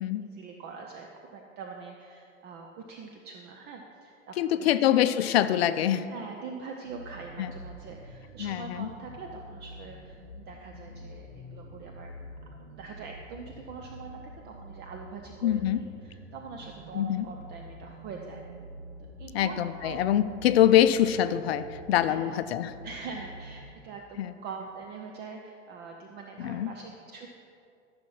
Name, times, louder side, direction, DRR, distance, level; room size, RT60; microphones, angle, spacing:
voice 1, 0.2-4.9 6.1-12.1 12.7-18.4 19.2-20.0 20.8-20.9 22.1-22.4 22.8-27.3, right 5 dB, 25° right, 2 dB, 0.7 m, -43 dB
voice 2, 4.4-6.1 7.4-7.5 8.4-8.6 15.4-15.8 16.9-17.2 19.3-22.7 24.2-24.3 26.4-26.7, left 11 dB, 55° left, 12 dB, 0.6 m, -24 dB
sound 1, 6.8-23.7, equal, 80° right, 2.0 m, -47 dB
13.5 x 5.8 x 5.6 m, 2.5 s
figure-of-eight pair, 95°, 38 cm